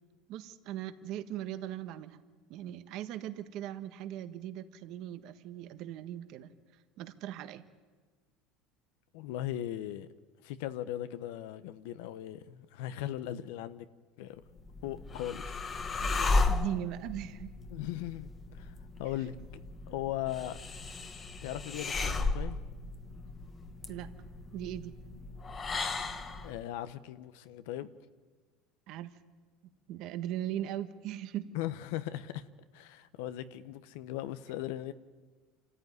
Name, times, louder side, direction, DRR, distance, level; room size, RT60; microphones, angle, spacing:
voice 1, 0.3-2.2 2.5-6.5 7.0-7.6 16.0-17.5 23.9-24.1 24.5-24.9 28.9-29.1 29.9-31.5, right 12 dB, 55° right, 1.4 m, -39 dB
voice 2, 9.1-10.1 10.4-13.9 14.2-14.4 14.8-15.4 17.7-19.3 19.9-20.6 21.4-22.6 26.4-27.9 31.5-32.5 32.7-34.9, left 13 dB, 80° left, 0.9 m, -38 dB
sound 1, 14.5-26.6, left 3 dB, 25° left, 1.3 m, -35 dB
27.0 x 14.0 x 9.6 m
cardioid pair, 140°, 0 cm